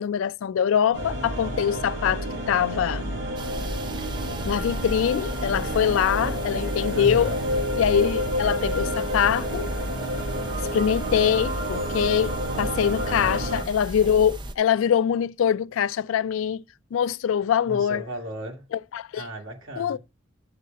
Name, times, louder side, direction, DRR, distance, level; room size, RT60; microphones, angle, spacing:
voice 1, 0.0-3.1 4.5-7.3 7.8-9.7 10.7-16.6 16.9-18.0 18.9-19.2 19.8-20.0, left 8 dB, 80° left, 0.3 m, -23 dB
sound 1, 0.9-13.6, equal, 60° right, 5.5 m, -29 dB
sound 2, 3.4-14.5, right 1 dB, 20° right, 0.5 m, -36 dB
voice 2, 6.9-7.5 13.0-13.4 17.7-18.7 19.2-20.0, right 1 dB, 85° right, 2.3 m, -36 dB
6.8 x 6.5 x 5.2 m
head